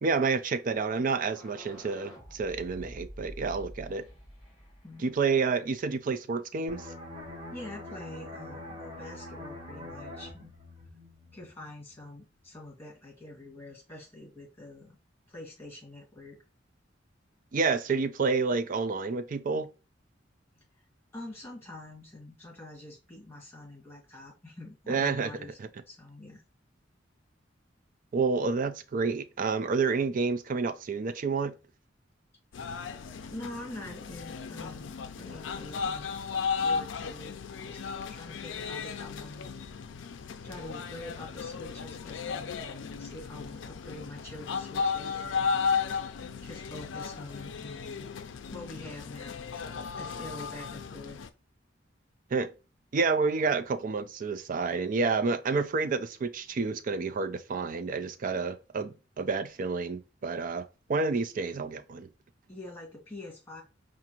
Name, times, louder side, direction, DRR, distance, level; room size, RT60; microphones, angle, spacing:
voice 1, 0.0-4.0 5.0-6.9 17.5-19.7 24.9-25.3 25.6-25.7 28.1-31.5 52.3-52.5 52.9-62.1, right 4 dB, 45° right, 0.4 m, -29 dB
sound 1, 0.8-5.6, equal, 5° right, 2.0 m, -48 dB
sound 2, 6.7-12.1 12.4-12.6, left 1 dB, 25° right, 1.1 m, -44 dB
voice 2, 7.5-10.5 11.3-15.0 15.3-16.4 21.1-25.6 25.9-26.4 33.3-36.1 36.6-37.8 38.1-39.8 40.4-45.9 46.4-48.1 48.5-51.2 62.5-63.6, left 1 dB, 10° left, 1.8 m, -45 dB
sound 3, 32.5-51.3, left 5 dB, 85° left, 0.4 m, -35 dB
4.8 x 2.5 x 2.9 m
head